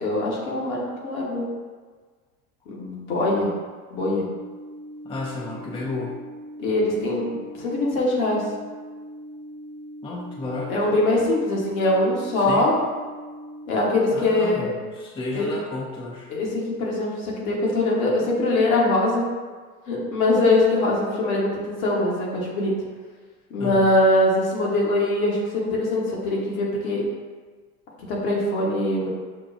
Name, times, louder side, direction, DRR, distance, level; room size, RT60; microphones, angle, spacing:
voice 1, 0.0-1.5 2.7-3.5 3.9-4.3 6.6-8.4 10.7-12.7 13.6-14.7 15.3-15.5 16.3-19.2 19.9-22.7 23.5-27.0 28.1-29.1, left 2 dB, 70° left, -4 dB, 1.3 m, -22 dB
sound 1, 4.0-14.0, equal, 50° left, 1.0 m, -40 dB
voice 2, 5.0-6.2 10.0-10.7 12.4-12.7 14.1-16.3 23.6-24.0, left 3 dB, 10° left, -2 dB, 0.5 m, -32 dB
6.0 x 2.3 x 2.5 m, 1.5 s
hypercardioid pair, 80°, 44 cm